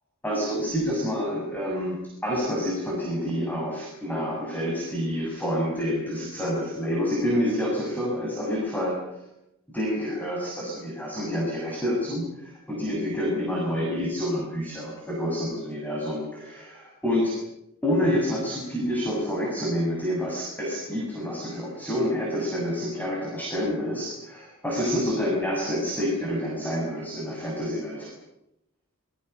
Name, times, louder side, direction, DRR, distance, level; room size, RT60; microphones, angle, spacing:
voice 1, 0.2-9.2 9.7-17.3 17.8-28.1, equal, 10° left, -2 dB, 7.0 m, -28 dB
27.5 x 22.5 x 6.9 m, 0.84 s
head